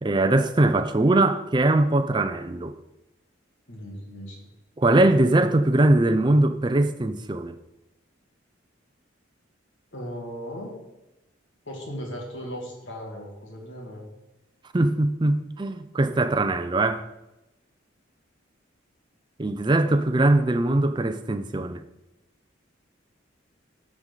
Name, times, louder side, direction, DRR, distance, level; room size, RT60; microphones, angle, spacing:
voice 1, 0.0-2.8 4.8-7.5 14.7-17.1 19.4-21.8, right 2 dB, 25° right, 0.5 m, -21 dB
voice 2, 3.7-4.5 9.9-10.7 11.7-14.1, equal, 80° left, 2.4 m, -37 dB
12.5 x 4.8 x 3.9 m
head